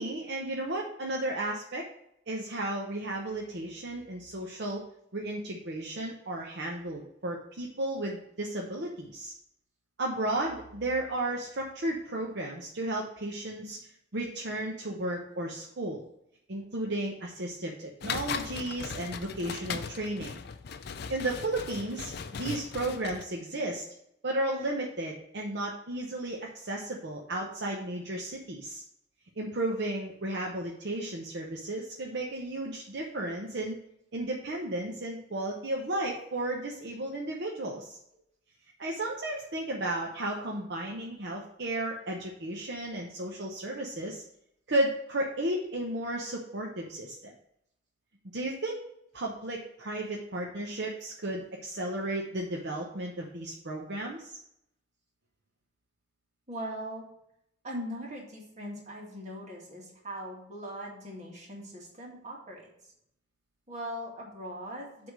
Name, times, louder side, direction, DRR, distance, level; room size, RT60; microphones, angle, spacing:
voice 1, 0.0-1.9 2.3-4.8 5.1-9.3 10.0-16.0 16.5-20.4 21.1-23.9 24.2-28.8 29.4-33.8 34.1-38.0 38.8-44.2 44.7-47.3 48.3-48.8 49.1-54.4, right 1 dB, 60° right, 0 dB, 0.9 m, -34 dB
sound 1, 18.0-23.2, left 6 dB, 60° left, 0.5 m, -38 dB
voice 2, 56.5-57.0 57.6-62.7 63.7-65.1, equal, 40° right, -2 dB, 2.1 m, -40 dB
8.0 x 3.6 x 6.3 m, 0.77 s
head